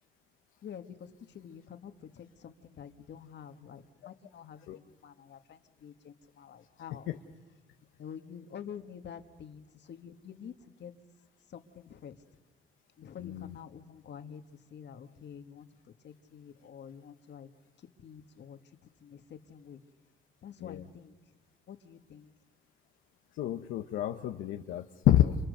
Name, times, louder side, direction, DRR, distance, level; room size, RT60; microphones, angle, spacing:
voice 1, 0.6-7.1 8.0-10.9 11.5-12.2 13.0-17.5 17.8-18.6 19.0-19.8 20.4-21.1 21.7-22.3, left 8 dB, 60° left, 7 dB, 1.9 m, -48 dB
voice 2, 13.2-13.6 20.6-20.8 23.4-25.4, left 13 dB, 90° left, 4 dB, 1.1 m, -28 dB
30.0 x 29.0 x 6.7 m, 1.2 s
cardioid pair, 90°, 20 cm